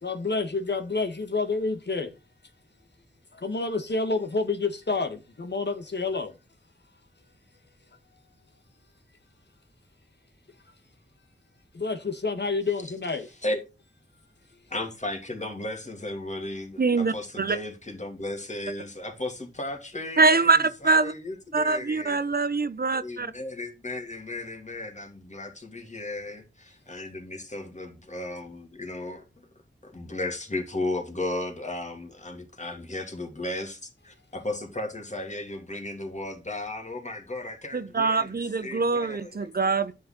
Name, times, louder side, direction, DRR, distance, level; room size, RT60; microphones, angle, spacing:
voice 1, 0.0-2.1 3.3-6.3 11.7-13.3 14.5-14.6 39.2-39.4 39.7-39.8, left 3 dB, 55° left, 1.7 m, -29 dB
voice 2, 14.7-22.2 22.9-29.5 29.8-38.3 38.6-39.5, left 2 dB, 35° left, 2.9 m, -35 dB
voice 3, 16.8-17.6 20.2-21.1 21.5-23.3 37.7-40.0, right 4 dB, 45° right, 0.7 m, -24 dB
10.5 x 6.6 x 4.0 m
wide cardioid pair, 65°, 21 cm